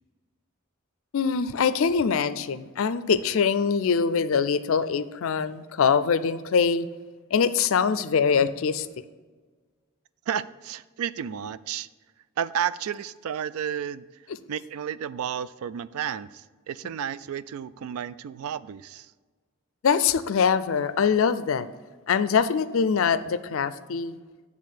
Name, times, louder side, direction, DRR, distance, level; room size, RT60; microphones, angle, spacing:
voice 1, 1.1-6.9 7.3-8.9 19.8-21.7 22.1-24.2, left 6 dB, 65° left, 14 dB, 0.4 m, -23 dB
voice 2, 10.3-11.9 12.4-14.1 14.5-19.1, right 8 dB, 80° right, 16 dB, 0.3 m, -32 dB
8.5 x 3.5 x 6.4 m, 1.4 s
head